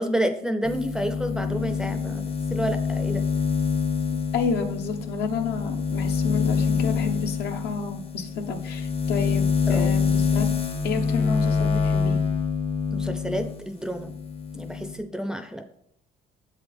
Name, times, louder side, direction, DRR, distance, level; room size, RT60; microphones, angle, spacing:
voice 1, 0.0-3.3 9.7-9.9 12.9-14.2 14.5-15.7, right 1 dB, 5° right, 6 dB, 0.4 m, -29 dB
sound 1, 0.6-13.6 13.9-14.9, left 6 dB, 35° left, 0.7 m, -26 dB
voice 2, 4.3-10.5 10.8-12.2, left 5 dB, 75° left, 5 dB, 0.8 m, -30 dB
7.4 x 4.0 x 3.4 m, 0.71 s
cardioid pair, 110°, 17 cm